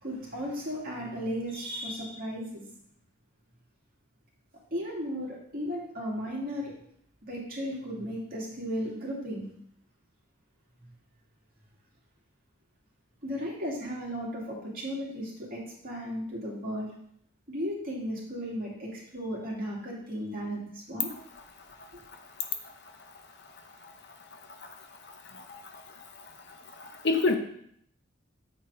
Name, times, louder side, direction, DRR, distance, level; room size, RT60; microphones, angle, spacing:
voice 1, 0.0-2.6 4.7-6.7 7.3-9.5 13.2-16.9 17.5-21.1 21.9-22.0, equal, 45° right, -4 dB, 2.4 m, -35 dB
voice 2, 25.3-25.8 26.8-27.4, left 3 dB, 55° left, 5 dB, 0.8 m, -28 dB
7.7 x 4.5 x 4.8 m, 0.67 s
head